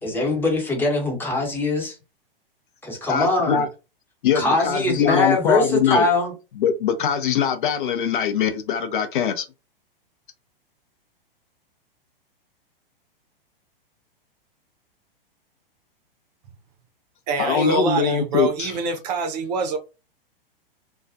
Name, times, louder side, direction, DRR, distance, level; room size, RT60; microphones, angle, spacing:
voice 1, 0.0-2.0 2.8-3.6 4.3-6.3, left 2 dB, 5° left, 0.9 m, -22 dB
voice 2, 3.1-3.7 4.2-6.1 6.6-9.5 17.4-18.8, left 7 dB, 60° left, 0.6 m, -22 dB
voice 3, 17.3-19.8, right 4 dB, 45° right, 0.7 m, -25 dB
2.3 x 2.3 x 2.5 m
figure-of-eight pair, 105°, 29 cm